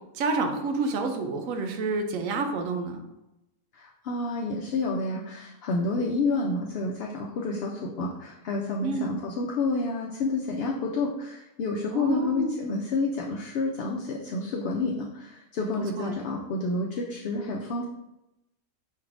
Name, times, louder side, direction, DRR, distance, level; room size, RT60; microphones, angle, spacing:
voice 1, 0.1-3.0 8.8-9.2 11.9-12.6 16.0-16.1, right 3 dB, 90° right, 6 dB, 1.0 m, -29 dB
voice 2, 3.7-17.8, left 3 dB, 65° left, -1 dB, 0.7 m, -29 dB
5.3 x 3.3 x 2.5 m, 0.92 s
omnidirectional pair, 1.3 m